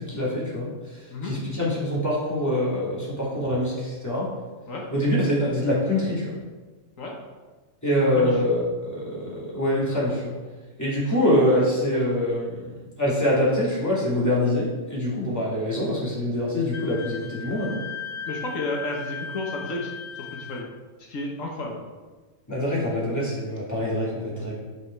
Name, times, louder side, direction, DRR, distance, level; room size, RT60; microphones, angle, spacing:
voice 1, 0.0-4.3 4.9-6.4 7.8-10.3 10.8-12.6 13.0-17.8 22.5-24.6, left 1 dB, 10° left, -7 dB, 2.8 m, -24 dB
Wind instrument woodwind instrument, 16.7-20.7, left 6 dB, 55° left, 0.5 m, -37 dB
voice 2, 18.3-20.7 21.1-21.8, left 2 dB, 75° left, -1 dB, 1.5 m, -32 dB
9.0 x 5.7 x 4.6 m, 1.3 s
omnidirectional pair, 1.4 m